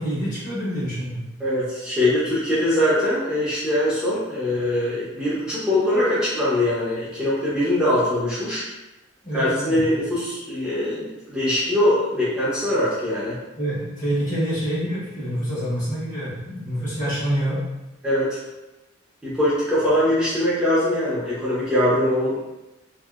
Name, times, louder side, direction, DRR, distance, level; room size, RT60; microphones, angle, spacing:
voice 1, 0.0-1.2 9.2-9.9 13.6-17.6, equal, 40° left, -9 dB, 1.3 m, -26 dB
voice 2, 1.4-8.6 9.3-13.4 18.0-18.4 19.2-22.4, left 1 dB, 5° right, -10 dB, 0.7 m, -22 dB
2.7 x 2.6 x 2.4 m, 1.0 s
head